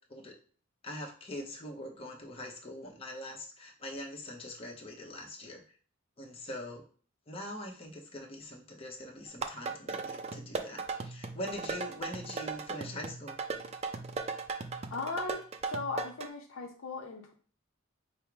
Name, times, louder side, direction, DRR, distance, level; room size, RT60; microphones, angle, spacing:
voice 1, 0.8-5.6 6.2-6.8 7.3-13.4, left 1 dB, 30° left, -1 dB, 0.9 m, -43 dB
sound 1, 9.3-16.3, right 4 dB, 30° right, 0.4 m, -38 dB
voice 2, 14.9-15.4 15.7-17.4, left 3 dB, 70° left, 3 dB, 0.7 m, -37 dB
5.4 x 2.0 x 4.6 m, 0.43 s
head